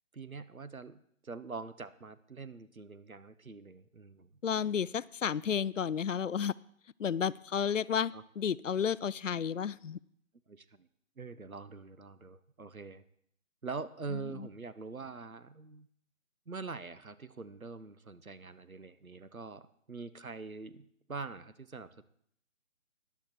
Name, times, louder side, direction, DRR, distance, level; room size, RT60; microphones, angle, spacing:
voice 1, 0.1-4.3 8.1-8.2 10.5-10.9 11.2-13.0 13.6-15.9 16.5-22.0, right 4 dB, 90° right, 14 dB, 1.1 m, -44 dB
voice 2, 4.4-6.5 7.0-10.0 14.1-14.5, left 7 dB, 65° left, 21 dB, 0.5 m, -32 dB
13.0 x 10.5 x 4.4 m, 0.68 s
figure-of-eight pair, 150°, 41 cm